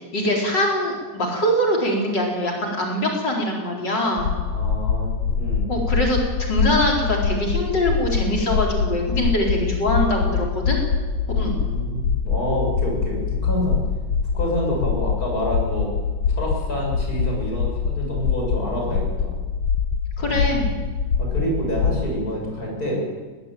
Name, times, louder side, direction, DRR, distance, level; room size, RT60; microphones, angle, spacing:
voice 1, 0.1-4.3 5.7-10.8 11.4-11.6 20.2-20.7, equal, 65° left, 0 dB, 4.9 m, -23 dB
sound 1, 4.2-22.0, left 6 dB, 85° left, 1.9 m, -24 dB
voice 2, 4.4-5.1 5.4-5.7 11.4-13.8 14.3-15.9 16.3-19.3 20.2-20.7 21.2-23.0, equal, 50° left, -1 dB, 8.3 m, -27 dB
20.5 x 20.0 x 9.2 m, 1.4 s
omnidirectional pair, 2.0 m